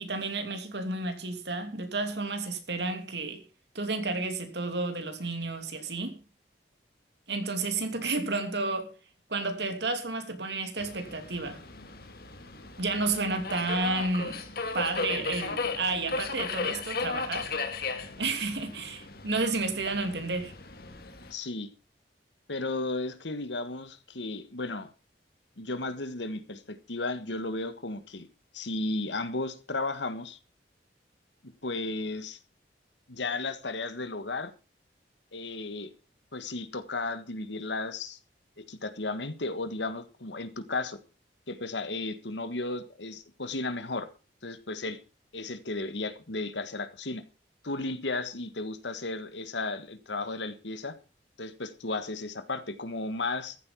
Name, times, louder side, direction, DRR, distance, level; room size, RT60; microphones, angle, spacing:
voice 1, 0.0-3.4 3.7-6.2 7.3-8.9 9.3-11.6 12.8-14.5 14.7-17.5 18.2-20.5, right 3 dB, 70° right, 2.9 m, -31 dB
Subway metro underground, 10.8-21.3, left 4 dB, 60° left, 2.0 m, -36 dB
voice 2, 21.3-21.7 22.5-24.9 25.6-28.3 28.5-30.4 31.6-32.4 33.1-34.5 35.3-35.9 36.3-38.2 38.6-41.0 41.5-44.1 44.4-45.0 45.3-47.2 47.6-50.9 51.4-53.6, left 2 dB, 85° left, 1.7 m, -34 dB
14.5 x 8.8 x 5.8 m
head